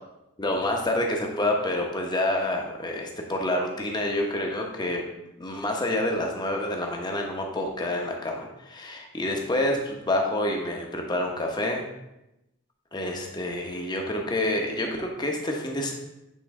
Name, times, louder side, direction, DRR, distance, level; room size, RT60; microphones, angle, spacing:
voice 1, 0.4-5.0 5.4-11.8 12.9-15.9, left 1 dB, 20° left, 1 dB, 0.9 m, -28 dB
8.3 x 3.8 x 3.7 m, 0.91 s
head